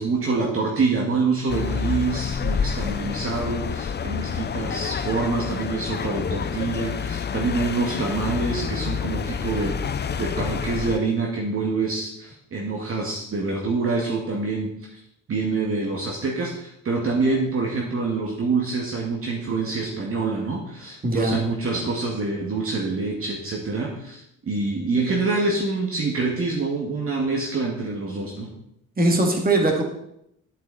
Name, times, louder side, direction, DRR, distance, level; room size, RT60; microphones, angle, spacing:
voice 1, 0.0-15.0 15.3-28.5, right 3 dB, 45° right, -1 dB, 2.0 m, -26 dB
sound 1, 1.5-11.0, left 6 dB, 35° left, 0.7 m, -28 dB
voice 2, 21.0-21.4 29.0-29.8, right 2 dB, 30° right, 2 dB, 2.6 m, -20 dB
10.5 x 8.4 x 4.1 m, 0.77 s
cardioid pair, 90°, 30 cm